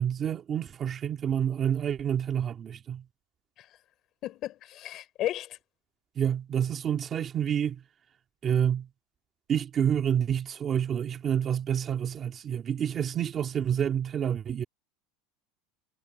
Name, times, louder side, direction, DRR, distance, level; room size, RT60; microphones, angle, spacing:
voice 1, 0.0-3.0 6.2-7.8 8.4-8.9 9.5-14.6, right 9 dB, 20° right, 2.4 m, -28 dB
voice 2, 4.2-5.6, left 13 dB, 30° left, 6.1 m, -34 dB
supercardioid pair, 175°, 0 cm